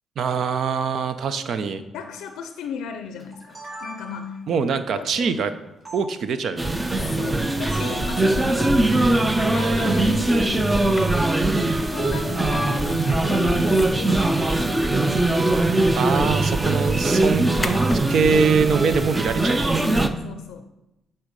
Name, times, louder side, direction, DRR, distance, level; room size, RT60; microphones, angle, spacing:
voice 1, 0.2-1.8 4.5-5.5 5.9-6.8 16.0-20.0, right 5 dB, 65° right, 11 dB, 0.6 m, -23 dB
voice 2, 1.9-5.3 7.1-9.1 9.5-10.9 11.9-14.7 20.0-20.6, left 6 dB, 85° left, 7 dB, 0.5 m, -36 dB
sound 1, 3.2-4.4 5.9-6.0 7.7-8.1, right 1 dB, 35° right, 3.0 m, -38 dB
sound 2, 6.6-20.1, right 2 dB, 15° right, 0.6 m, -21 dB
sound 3, 10.9-11.0 12.7-13.0 13.5-13.9 14.5-14.8 15.3-15.7 17.6-18.0 19.8-20.1, left 4 dB, 25° left, 0.8 m, -36 dB
7.9 x 4.4 x 5.3 m, 0.95 s
cardioid pair, 90°, 0 cm